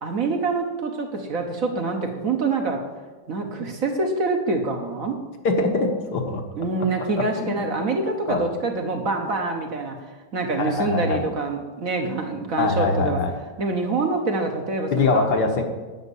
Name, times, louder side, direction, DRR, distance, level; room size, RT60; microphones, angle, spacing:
voice 1, 0.0-2.8 3.3-5.2 6.6-9.9 10.3-13.2 13.6-15.3, right 3 dB, 50° right, 3 dB, 1.4 m, -25 dB
voice 2, 5.4-6.4 7.2-7.7 8.3-8.4 9.3-9.4 10.6-11.2 12.6-13.3 14.9-15.6, left 3 dB, 65° left, 4 dB, 1.6 m, -23 dB
8.1 x 6.5 x 8.2 m, 1.3 s
omnidirectional pair, 2.0 m